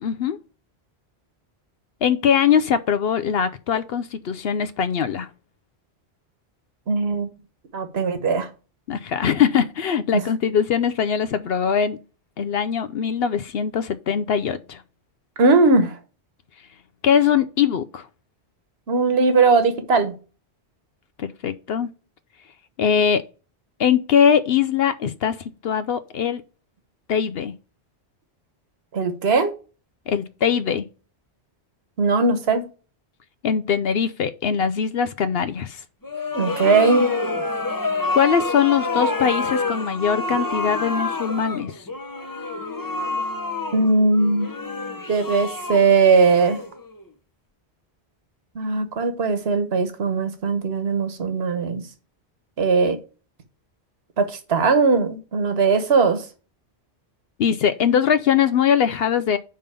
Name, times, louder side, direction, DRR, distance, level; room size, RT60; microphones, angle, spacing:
voice 1, 0.0-0.4 2.0-5.3 8.9-12.0 12.4-14.8 17.0-18.1 21.2-21.9 22.8-23.2 23.8-25.4 25.6-26.4 27.1-27.5 30.1-30.9 33.4-35.8 38.1-41.9 57.4-59.4, left 8 dB, 65° left, 0.8 m, -21 dB
voice 2, 6.9-7.3 7.7-8.5 10.1-10.2 15.4-15.9 18.9-20.1 28.9-29.5 32.0-32.6 36.3-37.1 43.7-44.5 45.1-46.6 48.5-51.8 52.6-53.0 54.2-56.2, right 4 dB, 70° right, 1.4 m, -19 dB
sound 1, 36.0-47.0, left 2 dB, 20° left, 0.7 m, -27 dB
5.4 x 5.4 x 6.6 m
omnidirectional pair, 1.1 m